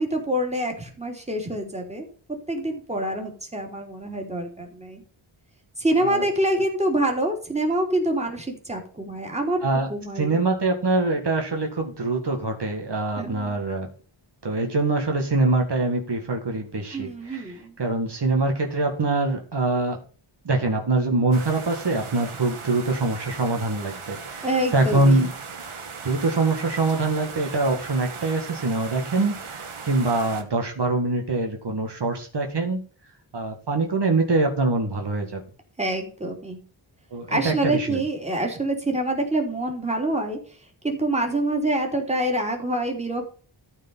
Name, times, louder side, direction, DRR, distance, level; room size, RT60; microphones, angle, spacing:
voice 1, 0.0-2.1 2.5-5.0 5.8-9.6 9.9-10.4 13.2-13.6 16.9-17.7 24.4-25.3 35.8-36.6 37.3-40.4 40.8-43.3, right 1 dB, 15° right, 1 dB, 3.3 m, -26 dB
voice 2, 10.2-13.9 14.4-20.0 20.4-25.3 26.0-32.8 33.3-35.4 37.1-38.0, right 3 dB, 55° right, 3 dB, 2.0 m, -24 dB
sound 1, 21.3-30.4, right 5 dB, 85° right, 2.0 m, -38 dB
13.5 x 4.8 x 5.7 m, 0.40 s
wide cardioid pair, 120°, 49 cm